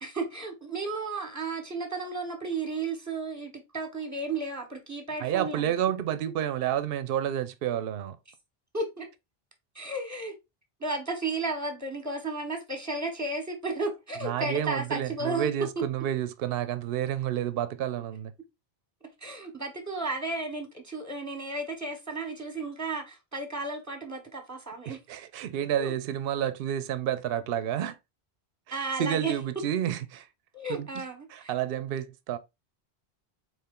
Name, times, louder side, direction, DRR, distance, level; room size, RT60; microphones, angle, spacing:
voice 1, 0.0-5.7 6.2-6.3 8.7-9.1 9.7-10.3 10.8-15.5 15.8-15.9 19.2-25.0 25.8-25.9 28.7-29.3 30.5-31.5, right 3 dB, 15° right, 1.1 m, -33 dB
voice 2, 5.2-8.2 14.2-18.3 24.9-28.0 28.7-30.3 30.7-31.0 31.3-32.4, right 10 dB, 70° right, 0.7 m, -30 dB
4.3 x 3.0 x 3.6 m
omnidirectional pair, 1.1 m